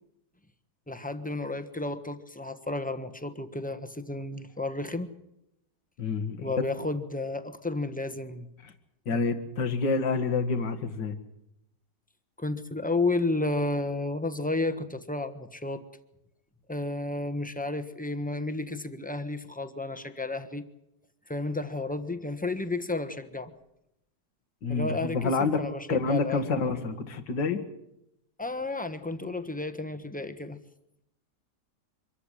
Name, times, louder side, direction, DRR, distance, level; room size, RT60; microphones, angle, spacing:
voice 1, 0.9-5.1 6.4-8.5 9.1-9.2 12.4-15.8 16.7-20.6 21.3-23.5 24.7-26.4 28.4-30.6, left 2 dB, 5° left, 8 dB, 1.0 m, -32 dB
voice 2, 6.0-6.5 9.1-11.2 24.6-25.6 25.9-27.6, left 4 dB, 80° left, 7 dB, 2.4 m, -28 dB
25.0 x 14.0 x 10.0 m, 0.83 s
omnidirectional pair, 1.9 m